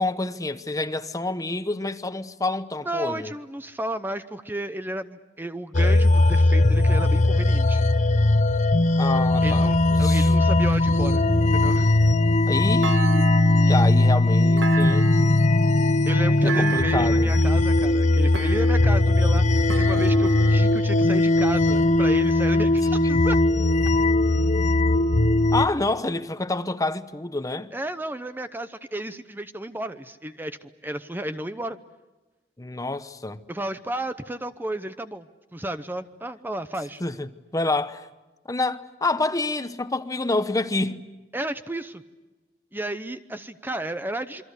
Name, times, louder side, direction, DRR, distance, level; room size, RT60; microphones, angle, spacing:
voice 1, 0.0-3.3 9.0-10.3 12.5-15.1 16.4-17.4 25.5-27.7 32.6-33.4 37.0-38.1 38.5-41.1, left 2 dB, 20° left, 1.0 m, -28 dB
voice 2, 2.8-7.9 9.4-11.2 11.5-11.9 16.1-23.4 27.7-31.8 33.5-35.3 35.5-37.0 41.3-42.0 42.7-44.4, right 1 dB, 10° right, 0.8 m, -32 dB
sound 1, 5.7-25.7, left 2 dB, 45° left, 0.8 m, -19 dB
Thump thud, 12.8-13.7 14.6-15.5 16.5-17.2 18.3-19.0 19.7-20.7, right 6 dB, 85° right, 1.9 m, -33 dB
27.5 x 24.0 x 8.3 m
head